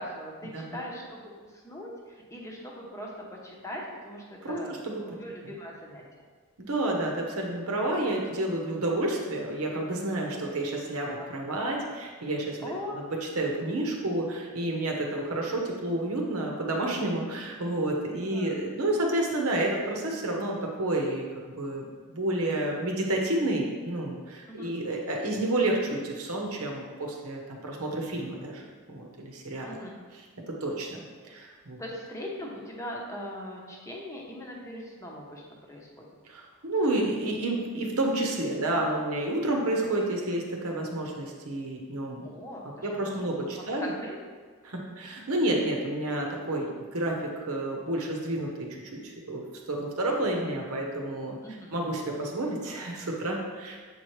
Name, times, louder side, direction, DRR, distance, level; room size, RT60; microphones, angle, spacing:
voice 1, 0.0-4.7 5.1-6.0 8.0-8.3 11.1-11.3 12.6-13.1 18.3-18.5 24.5-24.7 29.6-30.0 31.8-36.1 42.2-43.3 43.6-44.2 51.4-51.8, equal, 15° left, -2 dB, 0.9 m, -40 dB
voice 2, 4.4-5.2 6.6-13.0 13.4-28.6 28.9-29.8 30.5-31.8 36.2-42.3 42.8-43.9 44.6-49.4 49.7-51.4 51.7-53.8, right 1 dB, 70° right, 0 dB, 1.0 m, -30 dB
7.4 x 4.5 x 3.2 m, 1.5 s
head